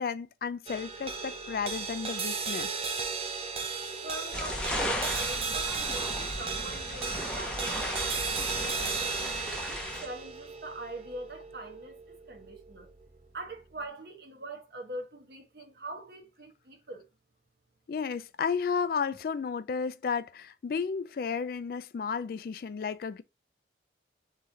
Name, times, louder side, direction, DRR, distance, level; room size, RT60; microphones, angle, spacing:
voice 1, 0.0-2.8 17.9-23.2, left 6 dB, 55° left, 0.3 m, -33 dB
sound 1, 0.7-13.2, right 5 dB, 35° right, 0.6 m, -35 dB
voice 2, 4.0-8.0 8.4-9.0 9.7-12.9 13.3-17.1, right 2 dB, 60° right, 1.0 m, -43 dB
sound 2, 4.3-10.1, left 1 dB, 5° left, 0.6 m, -35 dB
3.9 x 3.1 x 3.8 m
head